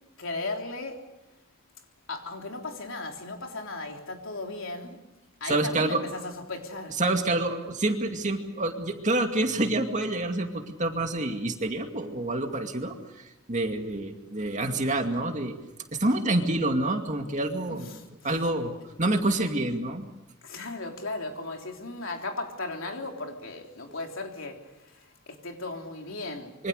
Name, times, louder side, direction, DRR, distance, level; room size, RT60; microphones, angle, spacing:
voice 1, 0.2-1.0 2.1-5.0 5.4-7.0 17.7-18.3 20.4-26.6, left 2 dB, 70° left, 3.6 m, -36 dB
voice 2, 5.5-6.0 7.0-13.0 13.5-15.5 15.9-17.9 18.2-18.7 19.0-20.1 26.6-26.7, right 2 dB, 35° right, 2.3 m, -27 dB
26.5 x 24.0 x 6.6 m
head